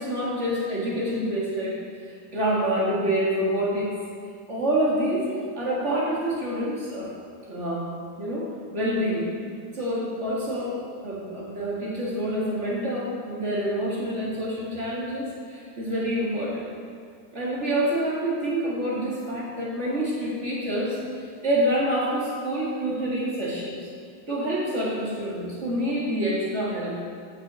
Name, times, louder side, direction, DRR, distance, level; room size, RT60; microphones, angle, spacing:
voice 1, 0.0-1.7 2.1-3.9 4.5-5.3 5.5-7.1 7.5-7.9 8.2-8.5 8.7-9.3 9.7-10.8 11.0-16.7 17.3-23.8 24.3-27.0, right 1 dB, 35° right, -5 dB, 2.2 m, -27 dB
6.8 x 6.5 x 6.9 m, 2.2 s
omnidirectional pair, 2.3 m